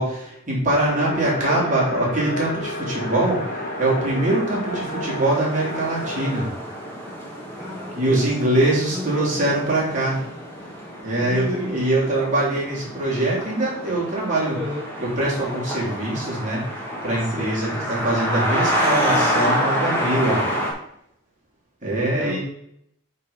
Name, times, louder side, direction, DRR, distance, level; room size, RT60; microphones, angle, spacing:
voice 1, 0.0-6.5 7.9-10.2 11.0-14.6 15.0-16.6 17.0-20.4 21.8-22.4, right 1 dB, 40° right, -5 dB, 3.1 m, -23 dB
sound 1, 0.8-6.5, left 1 dB, 40° left, 1.7 m, -31 dB
voice 2, 1.2-1.9 7.6-8.3 8.8-9.4 11.2-11.9 14.5-14.9 17.2-18.1 22.1-22.4, left 1 dB, 5° right, -6 dB, 1.3 m, -34 dB
sound 2, 3.0-20.7, equal, 10° left, 1.7 m, -28 dB
8.1 x 4.3 x 5.0 m, 0.73 s
head